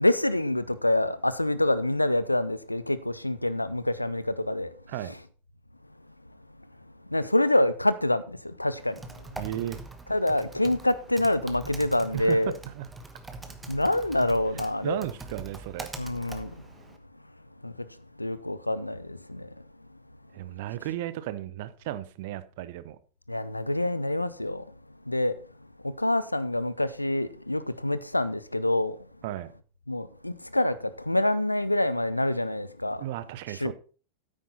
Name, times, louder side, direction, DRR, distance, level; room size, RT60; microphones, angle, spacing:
voice 1, 0.0-4.7 5.0-5.2 7.0-9.0 10.1-12.5 13.7-15.0 16.0-16.5 17.6-17.9 18.2-19.5 23.3-24.7 25.1-25.4 25.8-29.0 29.9-33.0 33.5-33.7, left 1 dB, 85° left, 0.6 m, -26 dB
Typing, 8.8-17.0, right 2 dB, 10° right, 1.2 m, -43 dB
voice 2, 9.4-9.8 12.1-12.9 14.8-15.9 20.3-23.0 29.2-29.5 33.0-33.7, right 13 dB, 50° right, 0.7 m, -34 dB
9.3 x 8.9 x 4.0 m
figure-of-eight pair, 90°, 0 cm